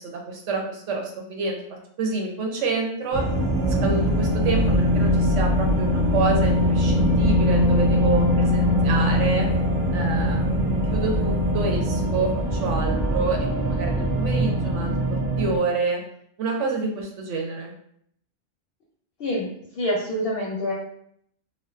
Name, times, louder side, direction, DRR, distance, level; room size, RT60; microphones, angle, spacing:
voice 1, 0.0-1.6 2.0-3.2 3.8-9.5 9.9-10.5 10.9-16.0 16.4-17.7, right 3 dB, 80° right, 1 dB, 0.9 m, -28 dB
sound 1, 3.1-15.6, equal, 55° right, 0.6 m, -22 dB
voice 2, 19.8-20.7, left 1 dB, 65° left, -4 dB, 0.7 m, -26 dB
2.4 x 2.2 x 2.3 m, 0.69 s
omnidirectional pair, 1.2 m